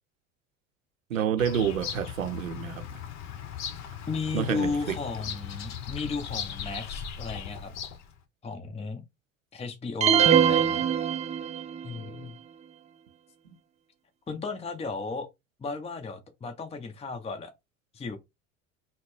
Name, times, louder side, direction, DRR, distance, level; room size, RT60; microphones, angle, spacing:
voice 1, 1.1-2.9 4.3-5.0, right 9 dB, 85° right, 0.7 m, -28 dB
Bird vocalization bird call bird song, 1.4-8.1, left 8 dB, 45° left, 0.9 m, -38 dB
voice 2, 4.1-7.8 8.4-9.0 9.5-10.8 11.8-12.4 14.3-15.3 15.6-17.5 17.9-18.2, left 4 dB, 15° left, 0.8 m, -34 dB
sound 1, 10.0-11.8, right 8 dB, 20° right, 0.4 m, -22 dB
4.0 x 2.1 x 3.3 m
figure-of-eight pair, 70°, 38 cm